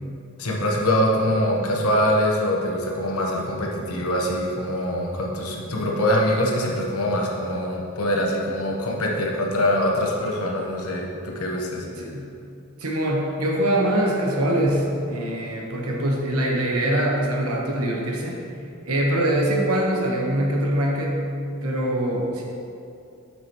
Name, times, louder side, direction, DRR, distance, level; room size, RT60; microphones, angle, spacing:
voice 1, 0.4-11.9, equal, 90° left, -1 dB, 1.1 m, -23 dB
voice 2, 12.0-12.3 12.8-18.4 18.8-21.2 21.6-22.4, right 1 dB, 85° right, -1 dB, 1.2 m, -23 dB
7.9 x 5.9 x 3.0 m, 2.6 s
head